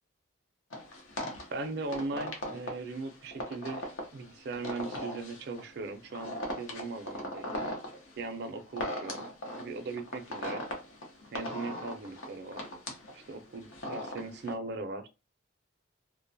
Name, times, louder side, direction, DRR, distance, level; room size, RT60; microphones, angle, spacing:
sound 1, 0.7-14.5, left 1 dB, 80° left, 0.7 m, -39 dB
voice 1, 1.5-3.8 4.1-7.5 8.2-9.2 9.5-10.6 11.3-12.6 13.1-15.1, right 3 dB, 55° right, 0.4 m, -39 dB
2.4 x 2.2 x 2.6 m
head